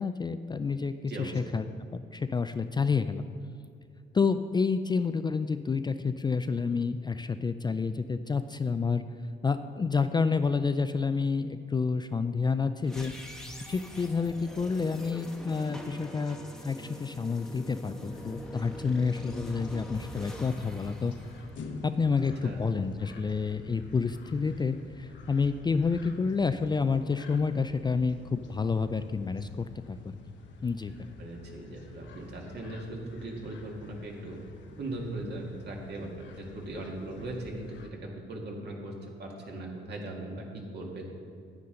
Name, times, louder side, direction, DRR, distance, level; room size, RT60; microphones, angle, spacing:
voice 1, 0.0-1.7 1.9-3.2 4.1-9.0 9.4-13.1 13.7-21.1 21.8-30.1 30.6-30.9, left 5 dB, 20° left, 10 dB, 0.3 m, -29 dB
voice 2, 1.1-1.4 22.4-22.6 31.2-34.4 34.8-38.9 39.2-41.1, right 1 dB, 60° right, 0 dB, 2.0 m, -39 dB
sound 1, 12.8-22.1, equal, 5° left, 1.1 m, -43 dB
sound 2, 18.1-37.9, left 2 dB, 65° left, 1.1 m, -48 dB
9.5 x 9.3 x 3.8 m, 2.5 s
cardioid pair, 90°, 20 cm